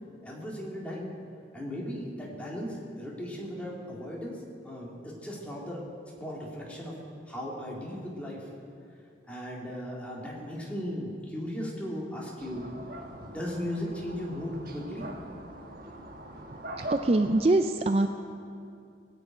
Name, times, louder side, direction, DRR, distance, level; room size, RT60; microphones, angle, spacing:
voice 1, 0.2-1.1 1.5-5.8 6.2-6.9 7.3-8.5 9.3-12.7 13.2-15.1, equal, 5° left, -4 dB, 2.4 m, -37 dB
sound 1, 12.4-17.4, right 1 dB, 55° right, 1.4 m, -42 dB
voice 2, 16.8-18.1, right 2 dB, 35° right, 7 dB, 0.4 m, -24 dB
19.0 x 6.7 x 9.0 m, 2.5 s
head